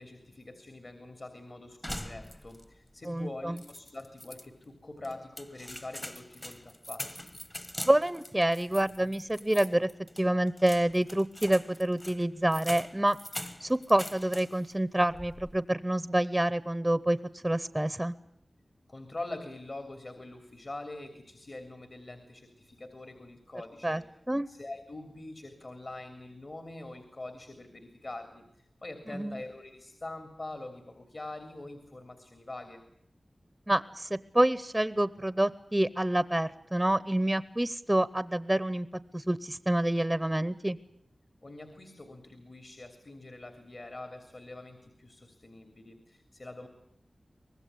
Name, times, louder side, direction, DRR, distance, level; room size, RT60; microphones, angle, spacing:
voice 1, 0.0-7.3 18.9-24.0 24.5-32.8 41.4-46.7, left 2 dB, 50° left, 8 dB, 3.2 m, -44 dB
sound 1, 1.8-2.7 3.0-3.1 3.6-4.5 5.0-14.7 15.1-15.6, left 1 dB, 20° left, 1.3 m, -43 dB
voice 2, 3.1-3.6 7.8-9.9 10.2-13.2 13.6-18.1 23.8-24.0 24.3-24.5 29.1-29.4 33.7-38.9 39.1-40.8, right 1 dB, 15° right, 17 dB, 0.8 m, -27 dB
24.5 x 20.0 x 8.4 m, 0.75 s
wide cardioid pair, 60°, 0 cm